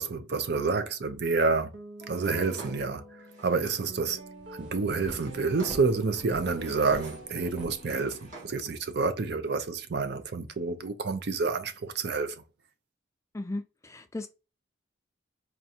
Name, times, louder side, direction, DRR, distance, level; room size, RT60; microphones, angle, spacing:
voice 1, 0.0-1.7 2.1-3.0 3.4-4.2 4.6-12.4, right 4 dB, 55° right, 0.5 m, -28 dB
Guitar, 1.7-9.9, right 1 dB, 90° right, 1.0 m, -49 dB
Drawer open or close, 2.1-4.0 4.8-6.0 6.4-7.4 7.6-8.8, right 2 dB, 40° right, 1.9 m, -50 dB
sound 1, 4.3-8.5, equal, 5° right, 0.8 m, -47 dB
voice 2, 13.3-14.3, left 2 dB, 15° left, 0.3 m, -36 dB
4.4 x 2.4 x 2.8 m
head